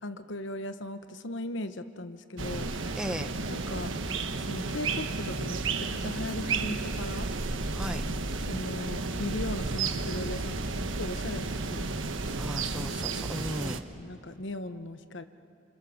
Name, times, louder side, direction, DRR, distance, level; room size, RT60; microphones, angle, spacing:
voice 1, 0.0-2.7 3.5-3.9 4.3-7.3 8.5-10.6 10.9-12.0 13.5-15.2, left 1 dB, 70° left, 10 dB, 1.1 m, -38 dB
sound 1, 2.4-13.8, right 3 dB, 80° right, 1.3 m, -32 dB
voice 2, 3.0-3.3 7.7-8.0 12.4-13.9, equal, 5° right, 8 dB, 0.8 m, -36 dB
30.0 x 27.0 x 7.2 m, 2.5 s
head